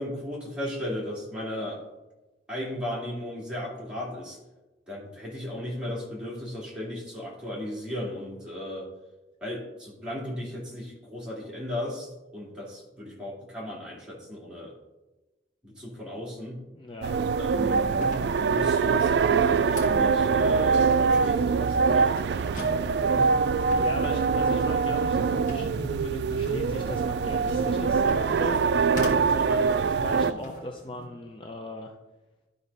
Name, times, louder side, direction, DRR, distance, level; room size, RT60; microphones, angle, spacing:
voice 1, 0.0-1.8 2.5-4.4 4.9-8.9 9.4-12.1 12.3-14.7 15.6-16.6 17.4-22.5, left 1 dB, 5° right, -6 dB, 2.6 m, -36 dB
voice 2, 16.7-17.2 23.7-31.9, left 1 dB, 30° left, 2 dB, 0.6 m, -38 dB
sound 1, 17.0-30.3, right 5 dB, 65° right, 0.3 m, -24 dB
sound 2, 17.9-31.1, left 2 dB, 45° left, 1.5 m, -42 dB
11.5 x 3.9 x 5.4 m, 1.1 s
head